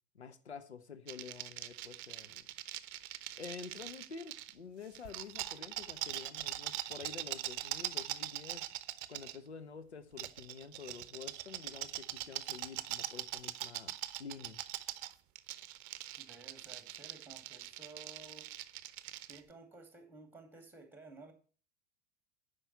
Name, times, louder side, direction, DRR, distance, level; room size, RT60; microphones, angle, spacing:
voice 1, 0.1-2.4 3.4-8.7 9.1-14.6, left 6 dB, 80° left, 0.9 m, -49 dB
sound 1, 1.1-4.5 4.9-9.4 10.2-19.4, right 15 dB, 45° right, 0.7 m, -42 dB
voice 2, 16.2-18.5 19.3-21.3, right 3 dB, 5° right, 2.4 m, -54 dB
9.6 x 5.4 x 8.1 m
figure-of-eight pair, 80°, 33 cm